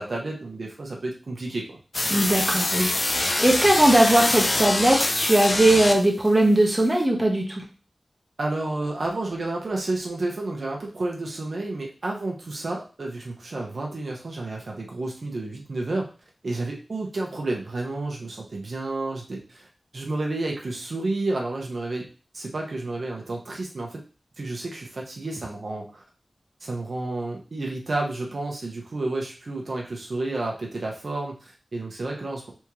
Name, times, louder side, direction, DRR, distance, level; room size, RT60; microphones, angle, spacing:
voice 1, 0.0-1.8 8.4-16.1 16.4-19.7 19.9-22.0 22.3-24.0 24.4-26.0 26.6-32.5, right 2 dB, 70° right, -1 dB, 1.0 m, -31 dB
sound 1, 1.9-6.3, left 2 dB, 45° left, 0.5 m, -24 dB
voice 2, 2.1-7.6, right 1 dB, 20° right, -1 dB, 1.2 m, -20 dB
4.3 x 3.6 x 3.1 m, 0.35 s
wide cardioid pair, 85°, 0 cm